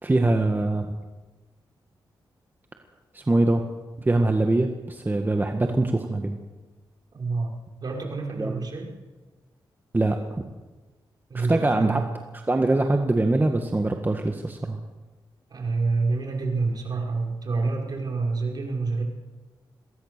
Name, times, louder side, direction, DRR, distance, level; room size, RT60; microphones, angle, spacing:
voice 1, 0.0-0.9 3.1-3.6 4.0-6.4 8.4-8.6 9.9-10.4 11.3-12.0 12.5-14.8, right 2 dB, 25° right, 4 dB, 1.8 m, -23 dB
voice 2, 7.1-7.5 7.8-8.9 11.3-12.0 15.5-19.0, right 3 dB, 55° right, 1 dB, 5.5 m, -27 dB
23.0 x 17.0 x 6.9 m, 1.3 s
cardioid pair, 70°, 8 cm